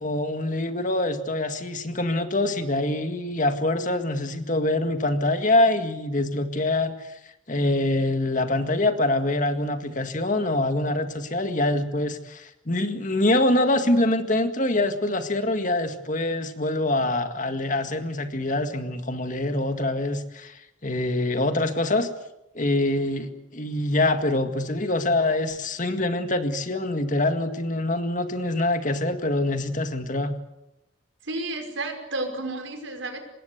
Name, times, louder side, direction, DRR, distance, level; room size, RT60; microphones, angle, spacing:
voice 1, 0.0-22.1 22.5-30.3, left 2 dB, 40° left, 8 dB, 1.9 m, -25 dB
voice 2, 31.2-33.2, right 2 dB, 70° right, 5 dB, 5.3 m, -31 dB
25.0 x 20.5 x 8.2 m, 0.86 s
head